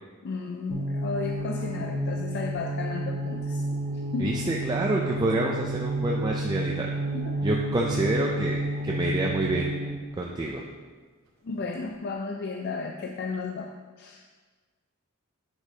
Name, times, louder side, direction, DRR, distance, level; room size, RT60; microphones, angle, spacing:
voice 1, 0.2-3.6 4.1-4.4 7.1-7.4 11.4-14.2, left 4 dB, 50° left, 3 dB, 0.4 m, -34 dB
sound 1, 0.7-10.1, right 1 dB, 70° right, 1.1 m, -30 dB
voice 2, 4.2-6.9 7.4-8.6 8.8-9.7 10.2-10.6, right 2 dB, 20° right, -2 dB, 0.4 m, -27 dB
9.7 x 5.1 x 2.8 m, 1.4 s
head